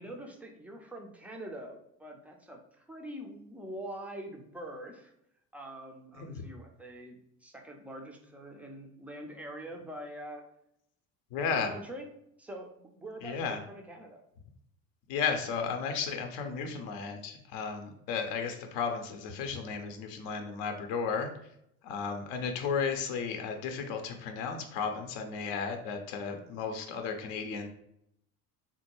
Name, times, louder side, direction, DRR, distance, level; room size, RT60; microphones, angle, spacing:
voice 1, 0.0-5.1 5.5-10.4 11.5-12.1 12.4-14.2, right 1 dB, 5° right, 2 dB, 0.4 m, -44 dB
voice 2, 11.3-11.7 13.2-13.6 15.1-21.3 21.8-27.7, left 5 dB, 55° left, 5 dB, 0.6 m, -34 dB
3.5 x 2.2 x 2.9 m, 0.75 s
figure-of-eight pair, 65°, 45 cm